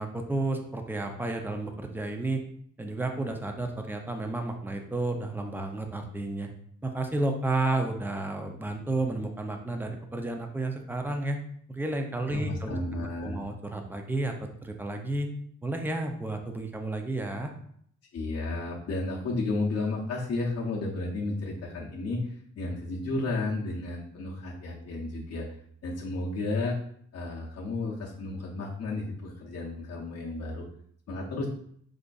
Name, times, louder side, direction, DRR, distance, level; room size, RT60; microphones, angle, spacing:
voice 1, 0.0-2.4 2.8-6.5 6.8-11.4 11.7-14.3 14.6-15.3 15.6-17.5, right 2 dB, 5° right, 4 dB, 0.3 m, -31 dB
voice 2, 12.3-13.4 18.1-25.5 25.8-26.8 27.1-30.7 31.1-31.5, left 2 dB, 55° left, -4 dB, 0.6 m, -32 dB
4.9 x 2.5 x 2.2 m, 0.65 s
wide cardioid pair, 150°, 30 cm